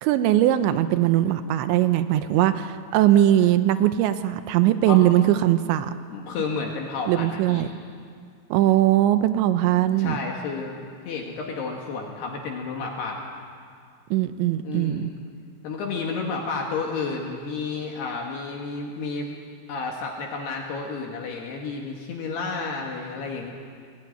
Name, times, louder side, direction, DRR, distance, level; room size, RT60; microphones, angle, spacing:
voice 1, 0.0-5.9 7.1-7.7 8.5-10.2 14.1-15.1, right 13 dB, 80° right, 11 dB, 3.0 m, -20 dB
voice 2, 6.1-7.7 10.0-13.2 14.6-15.1 15.6-19.3 19.7-23.5, left 4 dB, 65° left, 0 dB, 3.6 m, -31 dB
20.5 x 18.0 x 9.7 m, 2.2 s
omnidirectional pair, 5.4 m